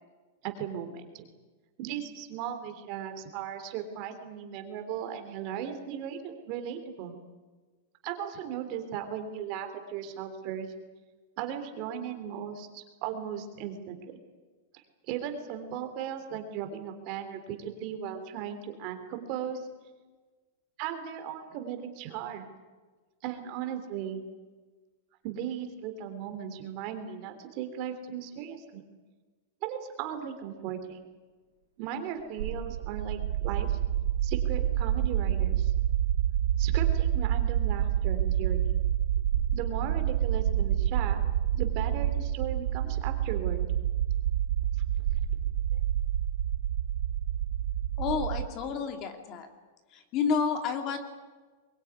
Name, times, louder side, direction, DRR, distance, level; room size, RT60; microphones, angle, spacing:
voice 1, 0.4-1.3 1.8-7.2 8.0-10.7 11.4-14.2 15.1-19.7 20.8-22.5 23.2-24.2 25.2-28.8 29.6-31.0 31.8-33.8 34.2-35.7 36.6-38.6 39.5-41.2 41.5-43.6 45.7-45.8, right 9 dB, 40° right, 7 dB, 3.3 m, -37 dB
sound 1, 32.4-48.4, right 11 dB, 75° right, 2.7 m, -28 dB
voice 2, 48.0-49.5 49.9-51.0, left 5 dB, 35° left, 6 dB, 2.5 m, -30 dB
23.0 x 22.5 x 9.7 m, 1.3 s
supercardioid pair, 160°, 0 cm